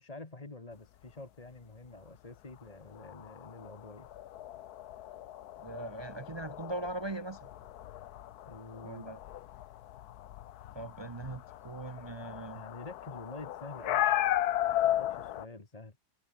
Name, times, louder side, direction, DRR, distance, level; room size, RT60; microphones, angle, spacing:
voice 1, 0.0-4.1 8.5-9.2 12.5-14.2 14.6-16.0, left 2 dB, 25° left, 1.8 m, -47 dB
sound 1, 3.0-15.5, left 12 dB, 75° left, 1.3 m, -35 dB
voice 2, 5.6-7.5 8.8-9.2 10.7-12.6, right 2 dB, 45° right, 0.3 m, -40 dB
omnidirectional pair, 1.7 m